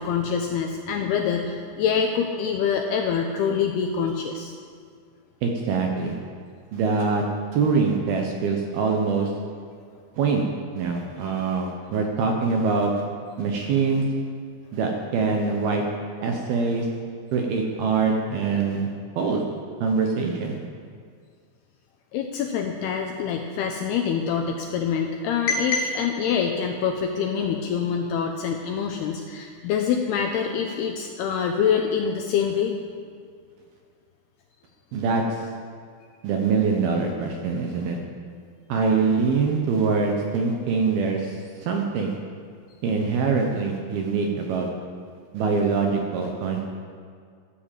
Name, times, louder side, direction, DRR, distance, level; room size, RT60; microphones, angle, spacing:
voice 1, 0.0-4.5 11.2-11.3 22.1-32.7, left 7 dB, 80° left, 3 dB, 2.4 m, -25 dB
voice 2, 5.4-6.2 6.7-7.2 7.5-9.3 10.2-10.4 10.8-12.9 13.4-14.0 14.7-15.8 16.2-16.9 17.3-18.9 19.2-19.4 19.8-20.6 34.9-35.4 36.2-38.0 38.7-42.2 42.8-44.7 45.3-46.6, right 4 dB, 70° right, 2 dB, 2.5 m, -24 dB
15.5 x 10.0 x 7.5 m, 2.1 s
omnidirectional pair, 5.5 m